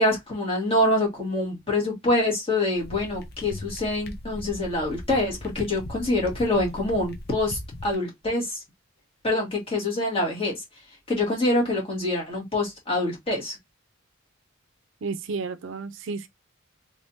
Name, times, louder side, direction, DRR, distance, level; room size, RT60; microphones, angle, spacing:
voice 1, 0.0-8.6 9.2-13.6, left 1 dB, 25° left, 1.7 m, -25 dB
sound 1, 2.8-7.9, left 1 dB, 50° left, 0.8 m, -39 dB
voice 2, 15.0-16.3, right 4 dB, 65° right, 0.4 m, -32 dB
3.5 x 3.4 x 2.7 m
head